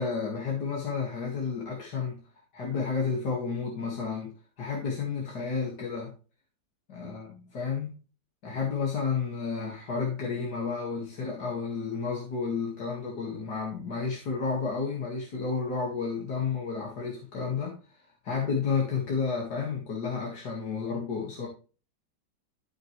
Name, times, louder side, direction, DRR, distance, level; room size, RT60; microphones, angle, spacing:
voice 1, 0.0-2.2 2.5-6.1 6.9-8.0 8.4-21.5, left 5 dB, 65° left, -2 dB, 2.6 m, -31 dB
14.0 x 5.9 x 3.2 m, 0.35 s
omnidirectional pair, 2.0 m